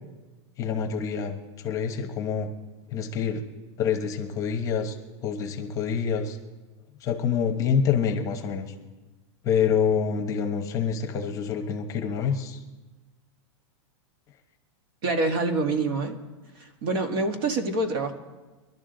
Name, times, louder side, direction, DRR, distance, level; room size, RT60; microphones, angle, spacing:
voice 1, 0.6-2.5 2.9-3.4 3.8-5.0 5.2-6.4 7.0-8.7 9.4-12.6, left 7 dB, 20° left, 5 dB, 1.0 m, -26 dB
voice 2, 15.0-16.2 16.6-18.1, right 3 dB, 50° right, 6 dB, 1.5 m, -26 dB
23.0 x 12.0 x 3.9 m, 1.2 s
supercardioid pair, 165°, 16 cm